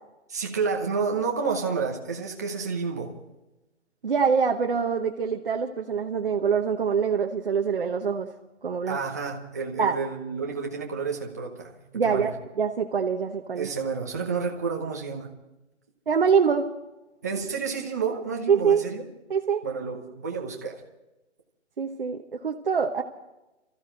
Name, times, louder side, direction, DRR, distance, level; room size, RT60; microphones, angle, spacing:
voice 1, 0.3-3.1 8.9-11.8 12.0-12.3 13.6-15.3 17.2-19.0 19.6-20.7, right 5 dB, 15° right, 0 dB, 0.9 m, -30 dB
voice 2, 4.0-8.3 8.6-9.0 9.8-10.0 11.9-13.7 16.1-16.7 18.5-18.8 19.3-19.6 21.8-23.0, right 6 dB, 50° right, 2 dB, 1.0 m, -24 dB
23.5 x 14.5 x 3.8 m, 1.0 s
hypercardioid pair, 180°, 36 cm